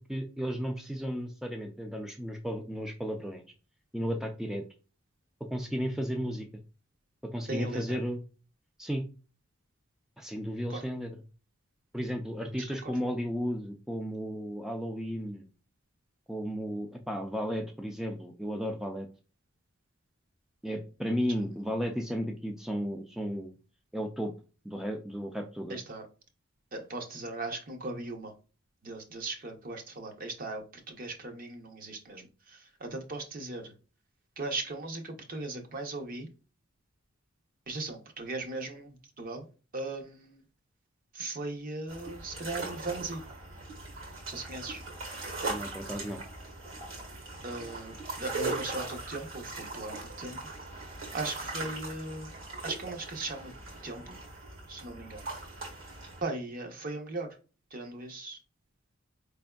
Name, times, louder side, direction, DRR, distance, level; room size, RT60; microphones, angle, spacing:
voice 1, 0.0-3.4 3.9-4.6 5.5-6.6 7.2-8.2 8.8-9.0 10.2-11.1 11.9-15.5 16.3-19.1 20.6-23.5 23.9-24.3 24.6-25.8 45.5-46.2, equal, ahead, 0.3 m, -34 dB
voice 2, 7.5-8.0 10.7-10.8 12.8-12.9 25.7-26.1 26.7-28.3 28.8-33.7 34.4-36.3 37.7-40.4 41.1-43.2 44.3-44.8 47.4-47.9 48.2-50.5 51.1-52.3 52.6-53.5 53.8-54.2 54.7-55.3 56.2-57.4 57.7-58.4, right 2 dB, 45° right, 0.7 m, -38 dB
sound 1, 41.9-56.2, right 2 dB, 70° right, 1.6 m, -40 dB
4.4 x 3.4 x 2.2 m
head